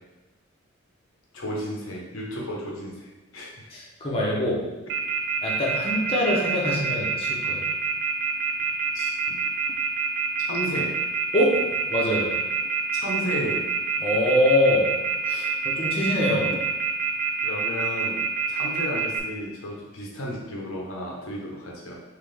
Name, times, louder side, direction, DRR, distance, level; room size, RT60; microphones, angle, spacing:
voice 1, 1.3-3.1 3.3-3.7 8.9-9.4 10.5-11.0 13.0-13.6 17.4-18.2 18.5-22.0, equal, 85° left, -3 dB, 1.0 m, -33 dB
voice 2, 3.7-4.6 5.4-7.6 11.3-11.5 11.9-12.3 14.0-14.9 15.3-16.5, left 1 dB, 30° left, -4 dB, 0.8 m, -24 dB
Telephone, 4.9-19.2, right 6 dB, 55° right, 0.5 m, -26 dB
3.5 x 3.2 x 3.4 m, 1.1 s
head